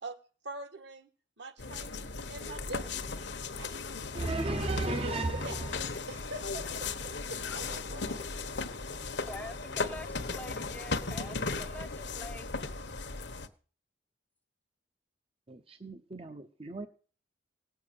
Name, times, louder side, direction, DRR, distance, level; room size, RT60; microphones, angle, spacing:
voice 1, 0.4-1.1 1.4-3.1 3.6-3.8 5.4-5.6 6.1-6.7 7.3-8.3, right 2 dB, 65° right, 1.6 m, -44 dB
sound 1, 1.6-13.5, left 4 dB, 60° left, 1.1 m, -37 dB
voice 2, 4.1-5.8 15.5-16.9, right 2 dB, 30° right, 0.7 m, -34 dB
voice 3, 9.3-12.5, left 1 dB, 10° left, 0.6 m, -45 dB
18.0 x 6.7 x 8.7 m
head